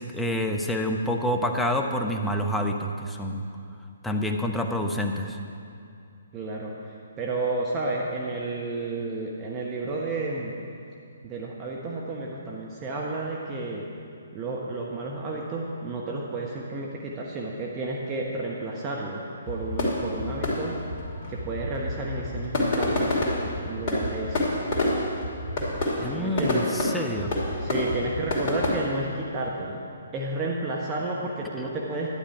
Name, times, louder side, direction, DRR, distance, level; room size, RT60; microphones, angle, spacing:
voice 1, 0.0-3.4 4.0-5.4 25.9-27.3, equal, 5° left, 3 dB, 0.7 m, -27 dB
voice 2, 6.3-10.7 11.2-13.9 14.3-20.8 21.3-23.1 23.6-24.5 26.1-26.6 27.6-29.8 30.1-32.1, right 2 dB, 20° right, -3 dB, 1.0 m, -31 dB
sound 1, 19.5-28.7, left 1 dB, 35° left, 2.7 m, -28 dB
11.5 x 10.0 x 4.8 m, 2.5 s
figure-of-eight pair, 130°, 0 cm